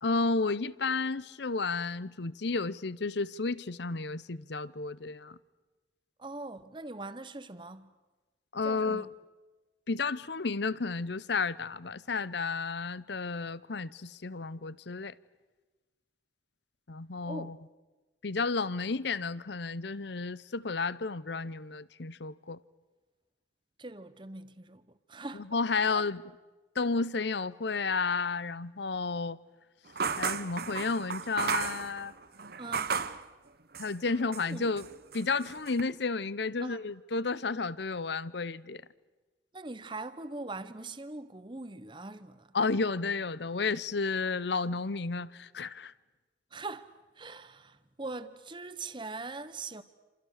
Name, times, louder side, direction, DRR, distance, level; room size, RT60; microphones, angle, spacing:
voice 1, 0.0-5.4 8.5-9.1 9.9-15.1 16.9-17.6 18.2-22.6 25.3-26.2 26.8-29.4 30.2-32.1 33.8-34.9 35.1-38.8 42.5-45.9, left 4 dB, 60° left, 0.8 m, -32 dB
voice 2, 6.2-7.9 8.6-9.1 17.2-17.5 23.8-25.5 25.9-26.1 32.6-33.0 34.5-34.7 36.6-36.8 39.5-42.5 46.5-49.8, right 3 dB, 25° right, 1.0 m, -42 dB
sound 1, 30.0-33.2 33.7-34.5 34.8-35.8, right 5 dB, 50° right, 1.0 m, -34 dB
28.5 x 27.5 x 6.6 m
head